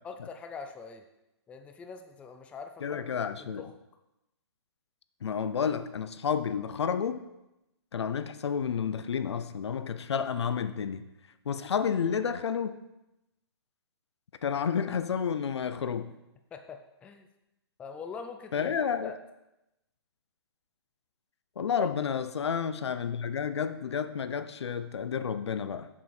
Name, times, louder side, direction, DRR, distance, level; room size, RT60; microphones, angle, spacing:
voice 1, 0.0-1.1 1.5-3.7 16.5-17.3 17.8-18.7 19.0-19.2 21.8-21.9, left 5 dB, 10° left, 6 dB, 0.4 m, -43 dB
voice 2, 2.8-3.7 5.2-7.2 7.9-11.0 11.5-12.7 14.4-16.1 18.5-19.1 21.6-25.9, left 7 dB, 80° left, 13 dB, 0.6 m, -30 dB
7.3 x 7.0 x 4.4 m, 0.92 s
hypercardioid pair, 145°, 14 cm